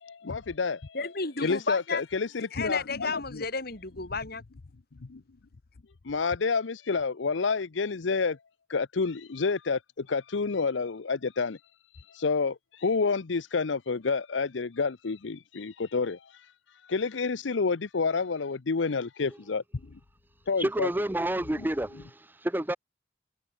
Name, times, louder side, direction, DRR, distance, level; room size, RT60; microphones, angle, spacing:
voice 1, 0.0-1.0 1.4-3.4 5.0-5.2 6.0-8.4 8.7-11.6 12.1-16.4 16.9-19.6 19.9-20.0 20.5-20.9, left 4 dB, 80° left, 0.7 m, -29 dB
voice 2, 0.9-2.0 2.5-4.4, left 4 dB, 55° left, 4.5 m, -32 dB
voice 3, 20.6-22.8, right 1 dB, 10° right, 0.6 m, -29 dB
head